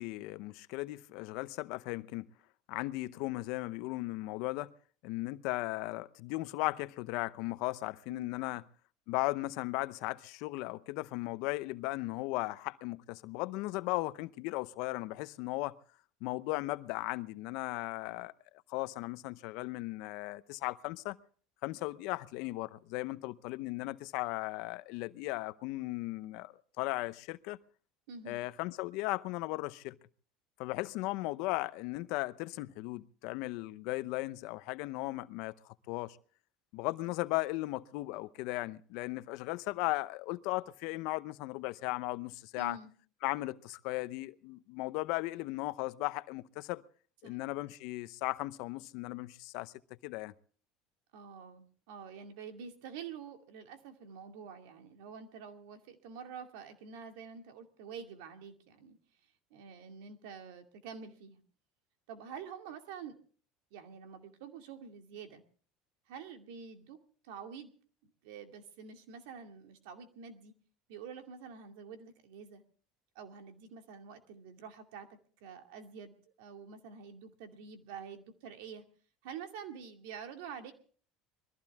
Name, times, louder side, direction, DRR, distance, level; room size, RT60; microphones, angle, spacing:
voice 1, 0.0-2.3 2.7-4.7 5.0-8.6 9.1-15.8 16.2-18.3 18.7-21.2 21.6-27.6 28.3-30.0 30.6-36.2 36.7-42.8 43.2-46.8 47.2-49.7 50.0-50.3, left 20 dB, 70° left, 0.7 m, -37 dB
voice 2, 8.1-8.6 28.1-28.4 42.6-42.9 47.2-47.4 51.1-59.0 59.5-61.4 62.1-63.2 63.7-65.4 66.1-67.0 67.3-67.7 68.2-70.5 70.9-72.6 73.2-78.8 79.2-80.7, right 6 dB, 80° right, 2.3 m, -47 dB
22.0 x 14.5 x 3.6 m
supercardioid pair, 105°, 0 cm